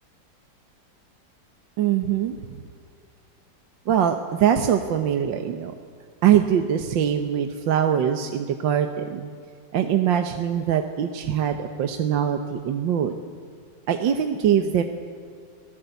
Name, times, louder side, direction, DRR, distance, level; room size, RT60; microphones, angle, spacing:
voice 1, 1.8-2.7 3.9-5.7 6.2-9.3 9.7-13.1 13.9-14.8, right 9 dB, 80° right, 6 dB, 1.7 m, -23 dB
27.5 x 17.5 x 8.2 m, 2.3 s
omnidirectional pair, 2.0 m